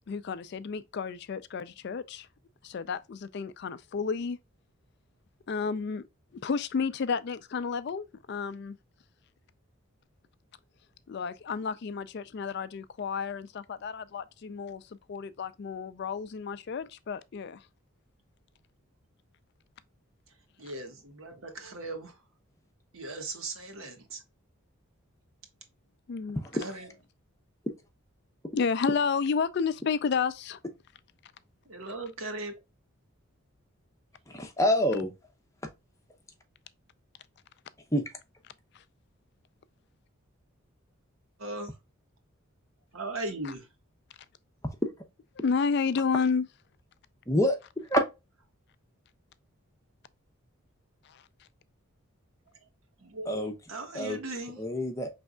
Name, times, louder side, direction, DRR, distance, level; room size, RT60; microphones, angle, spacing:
voice 1, 0.1-2.3 2.6-4.4 5.5-6.1 6.4-8.8 11.1-14.8 15.1-17.6 26.1-26.4 28.5-30.6 45.4-46.5, left 5 dB, 50° left, 0.3 m, -31 dB
voice 2, 20.3-22.2 22.9-24.2 26.5-26.9 31.6-32.5 41.4-41.8 42.9-43.7 52.5-52.7 53.0-54.6, right 2 dB, 75° right, 1.3 m, -39 dB
voice 3, 34.3-35.1 37.9-38.0 47.3-48.0 53.3-53.5 53.9-54.2 54.6-55.1, equal, 15° left, 0.7 m, -27 dB
5.3 x 3.4 x 2.2 m
head